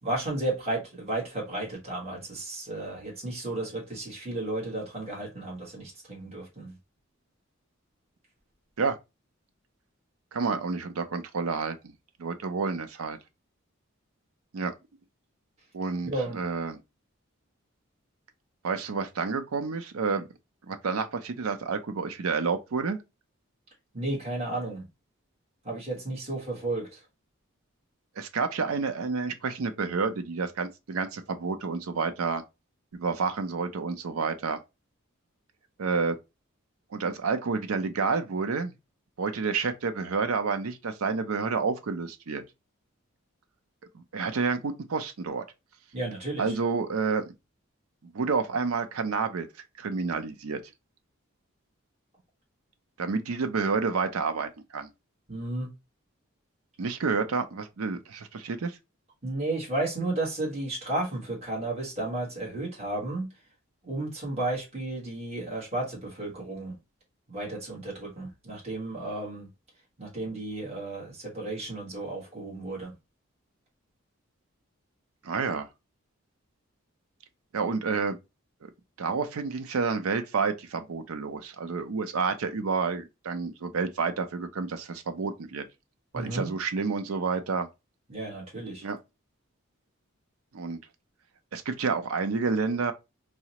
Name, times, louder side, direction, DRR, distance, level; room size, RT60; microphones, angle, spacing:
voice 1, 0.0-6.7 16.0-16.4 23.9-24.8 25.6-27.0 45.9-46.5 55.3-55.7 59.2-63.3 63.8-66.8 67.3-69.5 70.0-72.9 86.1-86.5 88.1-88.8, right 2 dB, 30° right, 1.3 m, -33 dB
voice 2, 10.3-11.9 12.2-13.2 14.5-14.7 15.7-16.8 18.6-20.3 20.7-23.0 28.2-32.4 32.9-34.6 35.8-36.2 36.9-38.7 39.2-42.4 43.9-45.4 46.4-47.3 48.0-49.5 49.8-50.6 53.0-54.9 56.8-58.8 75.2-75.7 77.5-78.2 78.6-78.7 79.0-85.7 86.1-87.7 88.8-89.0 90.5-90.8 91.5-92.9, right 4 dB, 85° right, 0.5 m, -29 dB
4.7 x 2.1 x 2.8 m
head